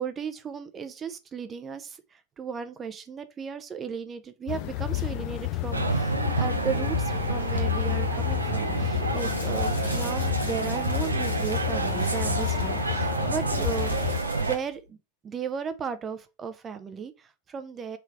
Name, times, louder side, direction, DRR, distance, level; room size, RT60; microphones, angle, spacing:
voice 1, 0.0-14.0 14.4-15.0 15.2-18.0, right 6 dB, 20° right, 0.6 m, -35 dB
sound 1, 4.5-14.2, left 17 dB, 40° left, 0.3 m, -31 dB
sound 2, 5.7-14.6, right 3 dB, 80° right, 0.6 m, -28 dB
sound 3, 9.1-14.7, left 2 dB, 85° left, 1.7 m, -42 dB
3.4 x 3.3 x 4.6 m
figure-of-eight pair, 90°, 0 cm